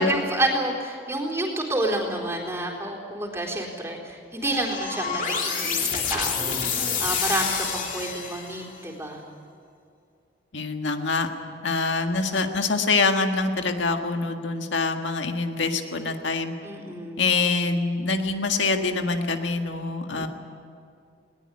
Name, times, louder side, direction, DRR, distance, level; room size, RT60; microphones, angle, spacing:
voice 1, 0.0-6.6 7.0-9.2 16.6-17.2 20.1-20.3, right 1 dB, 15° right, -1 dB, 3.8 m, -29 dB
sound 1, 4.4-8.7, left 6 dB, 45° left, 2.8 m, -28 dB
voice 2, 10.5-11.3 11.6-16.6 17.2-20.3, left 3 dB, 85° left, 5 dB, 1.7 m, -25 dB
20.5 x 19.0 x 9.7 m, 2.4 s
head